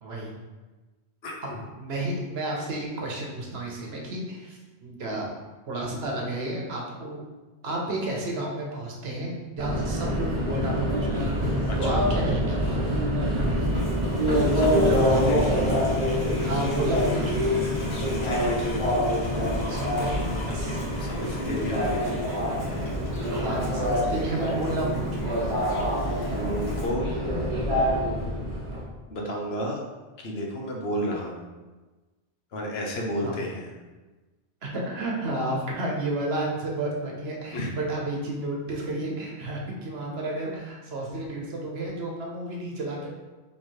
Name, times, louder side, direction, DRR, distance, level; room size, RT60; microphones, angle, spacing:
voice 1, 0.0-0.3 1.8-5.3 5.7-7.2 7.6-11.3 11.8-12.8 16.4-17.6 19.7-20.8 23.3-25.4 33.2-33.3 34.6-43.1, right 1 dB, 70° right, -1 dB, 1.1 m, -31 dB
voice 2, 1.2-1.6 11.7-12.0 14.5-15.4 17.9-18.6 21.0-22.1 26.3-27.1 29.1-29.8 30.2-31.4 32.5-33.7 37.5-37.8, equal, 70° left, -1 dB, 1.0 m, -31 dB
Subway metro underground, 9.6-28.8, equal, 30° right, 1.2 m, -26 dB
Livestock farm animals working animals, 13.6-26.9, left 1 dB, 50° left, 1.2 m, -41 dB
3.4 x 3.2 x 4.4 m, 1.2 s
omnidirectional pair, 1.1 m